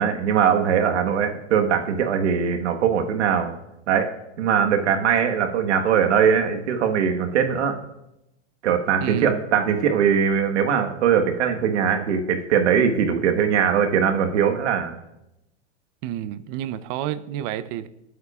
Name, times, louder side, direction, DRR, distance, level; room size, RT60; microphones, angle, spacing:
voice 1, 0.0-3.6 3.9-4.1 4.4-7.8 8.6-15.0, right 7 dB, 85° right, 4 dB, 1.5 m, -21 dB
voice 2, 9.0-9.4 16.0-17.9, right 11 dB, 45° right, 14 dB, 0.8 m, -29 dB
23.0 x 9.2 x 2.5 m, 0.89 s
supercardioid pair, 130°, 34 cm